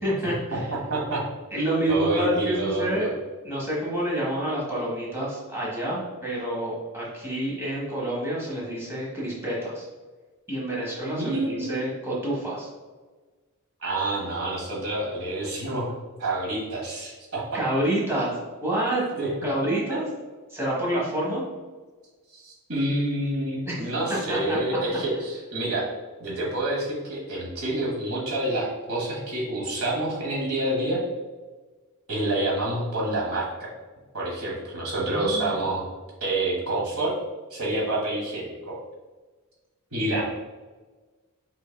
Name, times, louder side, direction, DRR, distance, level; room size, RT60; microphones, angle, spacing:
voice 1, 0.0-0.6 1.5-3.1 3.4-9.9 10.5-12.7 17.5-19.0 19.4-20.1 20.5-21.4 23.7-23.8 24.3-25.0 35.1-35.6, right 1 dB, 10° right, -6 dB, 1.4 m, -28 dB
voice 2, 0.5-1.2 1.9-3.1 11.1-11.8 13.8-15.9 16.2-17.4 19.2-19.3 22.3-25.9 26.2-31.0 32.1-33.7 34.1-35.8 36.2-37.1 37.5-38.8 39.9-40.2, right 1 dB, 70° right, -3 dB, 1.4 m, -28 dB
5.4 x 3.9 x 2.3 m, 1.3 s
head